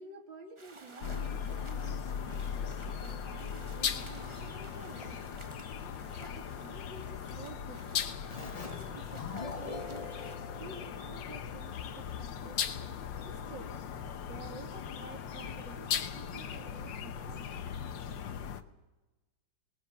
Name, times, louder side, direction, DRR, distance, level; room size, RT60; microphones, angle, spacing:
voice 1, 0.0-5.3 6.2-10.3 10.6-13.8 14.3-17.6 18.4-18.7, right 3 dB, 80° right, 3 dB, 3.0 m, -51 dB
sound 1, 0.6-10.4, right 3 dB, 25° right, 0.6 m, -54 dB
sound 2, 1.0-18.6, left 7 dB, 80° left, 1.7 m, -38 dB
Keyboard (musical), 8.3-11.7, left 4 dB, 35° left, 0.6 m, -44 dB
20.5 x 20.5 x 7.0 m, 1.1 s
omnidirectional pair, 2.0 m